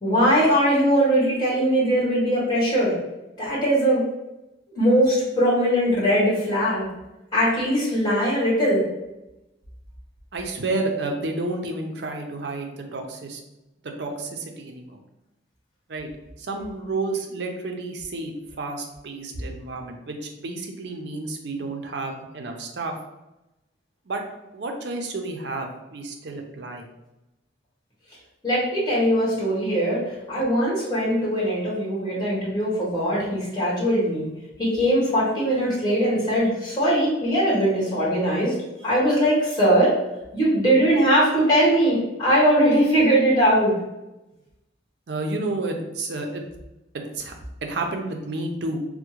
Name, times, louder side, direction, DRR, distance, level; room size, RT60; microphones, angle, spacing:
voice 1, 0.0-2.9 3.4-4.0 4.7-6.9 7.3-8.8 28.4-34.3 34.6-38.5 38.8-40.0 40.3-43.7, equal, 20° left, -7 dB, 1.2 m, -20 dB
voice 2, 10.3-13.4 13.8-15.0 15.9-16.1 16.4-23.0 24.1-24.2 24.5-26.9 45.1-46.4 46.9-47.3 47.6-48.8, right 2 dB, 65° right, 3 dB, 0.5 m, -31 dB
3.5 x 2.1 x 3.0 m, 0.96 s
head